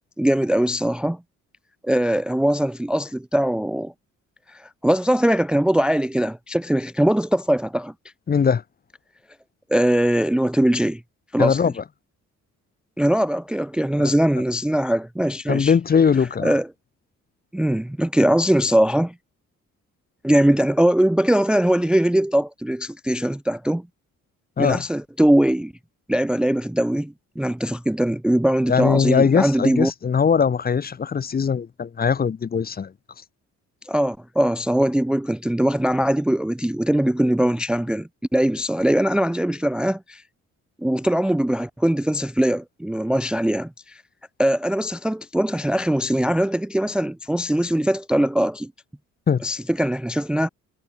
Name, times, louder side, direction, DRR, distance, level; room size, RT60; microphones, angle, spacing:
voice 1, 0.2-1.2 1.8-3.9 4.5-7.9 9.7-11.0 11.3-11.6 13.0-15.7 16.4-16.7 17.5-19.1 20.2-23.8 24.6-25.7 26.1-29.9 33.9-40.2 40.8-44.0 44.4-48.7 49.4-50.5, right 1 dB, 5° right, 0.5 m, -21 dB
voice 2, 8.3-8.6 11.4-11.8 14.0-14.1 15.5-16.6 24.6-24.8 28.7-32.9 49.3-49.4, left 6 dB, 30° left, 0.8 m, -20 dB
cardioid pair, 90°, 30 cm